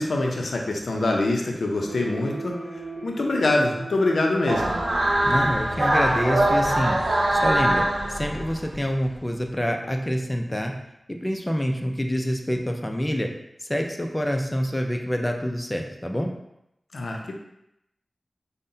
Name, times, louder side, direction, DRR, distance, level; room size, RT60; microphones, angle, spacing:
voice 1, 0.0-2.6 3.0-4.8 16.9-17.3, left 2 dB, 80° left, 0 dB, 0.5 m, -24 dB
sound 1, 1.9-7.7, right 3 dB, 40° right, 1.0 m, -40 dB
sound 2, 4.5-8.8, right 1 dB, 65° right, 0.6 m, -22 dB
voice 2, 5.2-7.0 7.3-10.7 11.1-13.3 13.6-16.3, equal, 15° left, 3 dB, 0.4 m, -27 dB
5.3 x 2.1 x 2.7 m, 0.83 s
cardioid pair, 50°, 0 cm